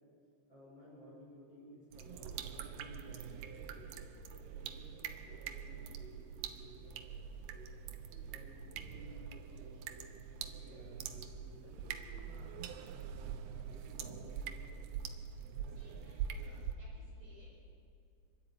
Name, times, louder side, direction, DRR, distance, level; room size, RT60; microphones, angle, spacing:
voice 1, 0.5-7.7 8.1-10.1 10.4-12.5 13.6-14.8, equal, 20° left, -5 dB, 6.3 m, -57 dB
sound 1, 1.9-16.7, right 8 dB, 75° right, 2.4 m, -44 dB
voice 2, 15.7-17.6, right 1 dB, 35° right, -5 dB, 5.8 m, -63 dB
28.0 x 12.0 x 9.0 m, 2.5 s
omnidirectional pair, 5.5 m